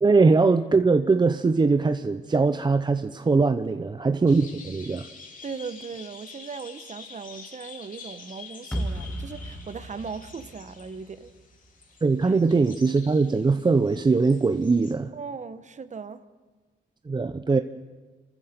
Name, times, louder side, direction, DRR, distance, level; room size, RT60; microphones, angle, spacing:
voice 1, 0.0-5.1 12.0-15.1 17.1-17.6, right 4 dB, 20° right, 0.7 m, -21 dB
sound 1, 4.3-14.9, left 5 dB, 40° left, 3.0 m, -47 dB
voice 2, 5.4-11.3 12.2-12.4 15.1-16.2, right 5 dB, 35° right, 1.2 m, -38 dB
sound 2, 8.7-11.8, right 1 dB, 5° left, 1.7 m, -35 dB
28.0 x 14.5 x 6.8 m
cardioid pair, 90°, 20 cm